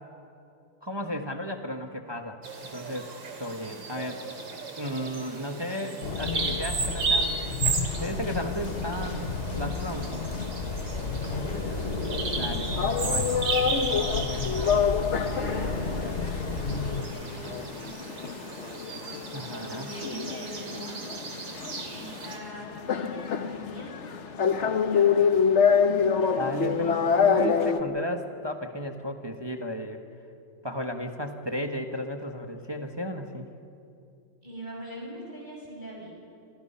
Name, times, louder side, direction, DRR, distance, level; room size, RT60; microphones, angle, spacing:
voice 1, 0.8-2.4 2.7-3.1 3.4-4.3 4.8-7.5 8.0-10.4 12.4-13.3 19.3-19.9 26.4-30.0 30.6-33.5, equal, 15° right, 4 dB, 0.9 m, -34 dB
Bird vocalization bird call bird song, 2.4-22.4, right 4 dB, 60° right, 3.1 m, -35 dB
voice 2, 5.3-5.6 11.2-12.0 14.3-14.5 15.1-16.3 16.8-18.0 19.5-21.0 21.9-25.0 26.2-27.4 34.4-36.1, equal, 20° left, -3 dB, 7.0 m, -43 dB
sound 1, 6.0-17.0, left 4 dB, 35° left, 1.1 m, -32 dB
sound 2, 7.9-27.8, left 6 dB, 55° left, 0.8 m, -27 dB
27.0 x 26.5 x 5.7 m, 2.5 s
omnidirectional pair, 2.3 m